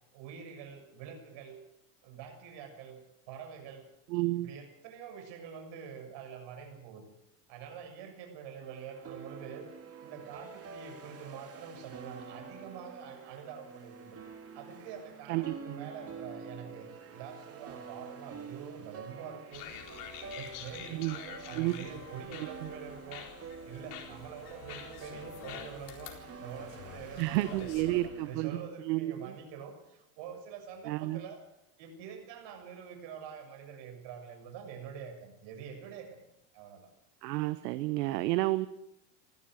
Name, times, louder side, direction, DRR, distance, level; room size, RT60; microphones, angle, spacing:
voice 1, 0.1-1.6 2.0-3.9 4.3-7.1 7.5-9.7 10.0-14.2 14.5-19.7 20.2-31.4 31.8-36.2 36.5-36.9, right 7 dB, 60° right, 5 dB, 6.9 m, -46 dB
voice 2, 4.1-4.5 15.3-15.8 20.9-21.2 21.6-21.8 27.2-29.3 30.9-31.2 37.2-38.7, right 18 dB, 80° right, 13 dB, 1.2 m, -31 dB
sound 1, 8.6-28.6, right 5 dB, 30° right, 3.3 m, -48 dB
sound 2, 19.5-28.1, left 8 dB, 70° left, 4.3 m, -47 dB
19.5 x 15.0 x 9.3 m, 0.84 s
supercardioid pair, 105°, 48 cm